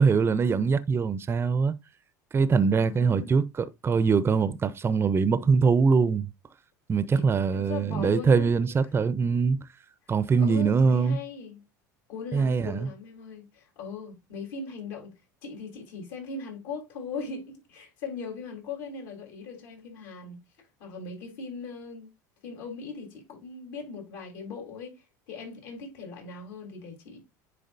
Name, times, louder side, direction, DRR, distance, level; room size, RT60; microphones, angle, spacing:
voice 1, 0.0-1.7 2.3-6.3 6.9-9.6 10.1-11.2 12.3-12.8, right 5 dB, 25° right, 0.6 m, -23 dB
voice 2, 2.8-3.4 7.1-8.5 10.4-11.6 12.1-15.1 15.4-20.4 20.8-22.1 22.4-27.2, left 4 dB, 70° left, 3.6 m, -39 dB
10.0 x 3.8 x 2.6 m
hypercardioid pair, 90°, 10 cm